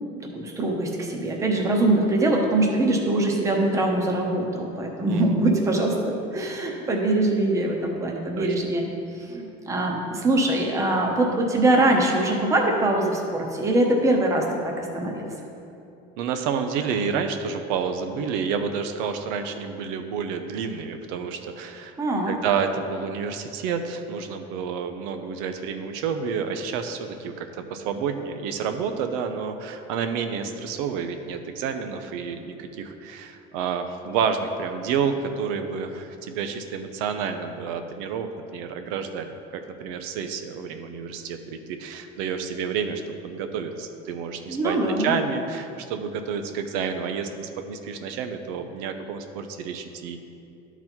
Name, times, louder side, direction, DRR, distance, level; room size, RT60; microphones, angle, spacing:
voice 1, 0.3-8.8 9.2-15.3 22.0-22.4 44.5-45.1, right 2 dB, 15° right, 0 dB, 0.8 m, -23 dB
voice 2, 16.2-21.9 22.3-39.3 39.5-50.2, right 6 dB, 85° right, 7 dB, 0.6 m, -29 dB
12.0 x 4.0 x 4.4 m, 2.7 s
cardioid pair, 170°, 18 cm